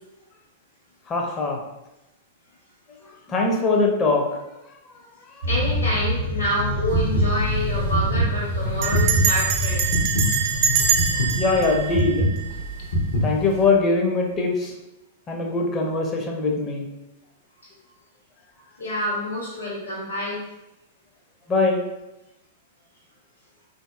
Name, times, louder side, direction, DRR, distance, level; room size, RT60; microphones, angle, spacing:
voice 1, 1.1-1.6 3.3-4.4 5.4-5.5 10.8-10.9 11.1-12.3 13.2-14.7 15.3-16.9 21.5-21.8, left 3 dB, 25° left, 1 dB, 0.6 m, -22 dB
sound 1, 5.4-11.7, left 1 dB, 70° right, 0.8 m, -27 dB
voice 2, 5.5-9.8 18.8-20.4, equal, 90° left, -11 dB, 1.3 m, -27 dB
Bell, 6.7-7.1 7.3-7.4 7.6-8.0 8.8-12.9, right 7 dB, 40° right, 0.5 m, -25 dB
sound 2, 6.9-13.6, equal, 60° left, 0.9 m, -24 dB
3.9 x 2.7 x 2.4 m, 0.93 s
figure-of-eight pair, 100°, 0 cm